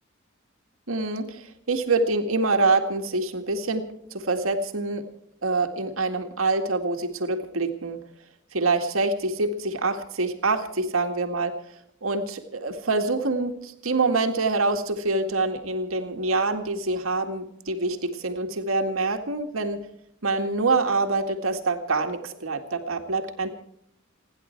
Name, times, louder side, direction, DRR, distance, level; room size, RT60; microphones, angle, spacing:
voice 1, 0.9-5.1 5.4-8.0 8.5-11.6 12.0-19.8 20.2-23.5, right 3 dB, 75° right, 5 dB, 2.0 m, -25 dB
29.5 x 10.5 x 4.5 m, 0.74 s
head